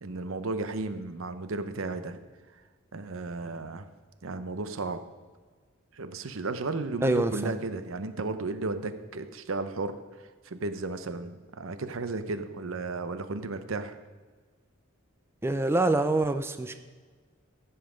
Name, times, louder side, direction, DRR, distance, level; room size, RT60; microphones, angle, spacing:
voice 1, 0.0-2.2 2.9-3.9 4.2-5.0 5.9-14.0, right 3 dB, 80° right, 10 dB, 0.7 m, -34 dB
voice 2, 7.0-7.6 15.4-16.8, right 2 dB, 10° right, 8 dB, 0.4 m, -26 dB
15.0 x 5.6 x 5.0 m, 1.4 s
head